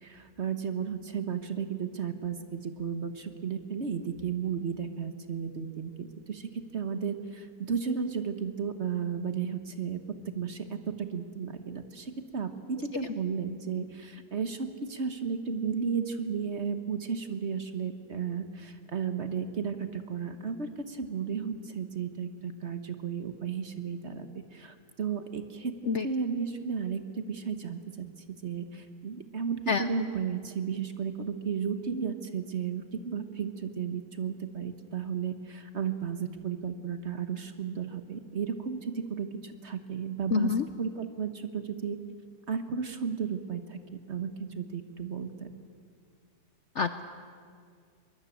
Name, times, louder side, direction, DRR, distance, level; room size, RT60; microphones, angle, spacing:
voice 1, 0.0-25.7 26.0-42.0 42.5-45.5, right 6 dB, 45° right, 9 dB, 1.3 m, -34 dB
voice 2, 40.3-40.6 46.8-47.0, left 5 dB, 55° left, 10 dB, 0.8 m, -26 dB
22.5 x 20.5 x 8.5 m, 2.1 s
omnidirectional pair, 1.9 m